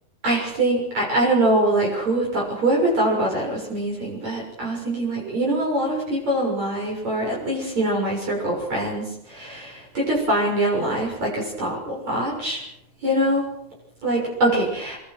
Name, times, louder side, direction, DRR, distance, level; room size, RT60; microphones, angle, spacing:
voice 1, 0.2-12.6 13.0-13.5 14.0-15.0, right 1 dB, 45° right, -2 dB, 7.8 m, -23 dB
26.0 x 24.5 x 6.2 m, 0.79 s
omnidirectional pair, 4.5 m